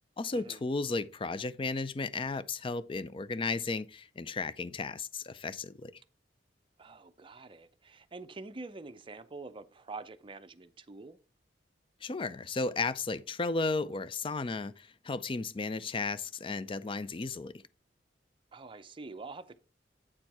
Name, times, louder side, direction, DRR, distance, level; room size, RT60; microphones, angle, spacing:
voice 1, 0.2-5.9 12.0-17.6, left 3 dB, 30° left, 0.4 m, -34 dB
voice 2, 6.8-11.2 18.5-19.6, right 3 dB, 30° right, 0.5 m, -46 dB
8.7 x 4.4 x 4.6 m
head